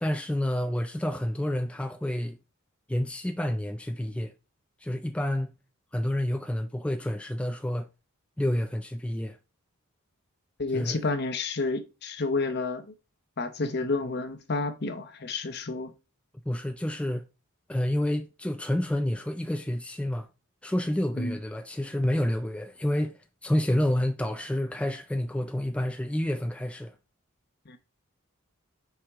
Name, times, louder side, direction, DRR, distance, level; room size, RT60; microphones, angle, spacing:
voice 1, 0.0-2.4 2.9-4.3 4.8-5.6 5.9-7.9 8.4-9.4 10.7-11.0 16.5-17.2 17.7-20.3 20.6-26.9, left 1 dB, 5° left, 0.3 m, -29 dB
voice 2, 10.6-12.9 13.4-15.9 21.1-21.4 27.7-27.8, left 3 dB, 50° left, 0.9 m, -30 dB
5.8 x 5.2 x 3.6 m
head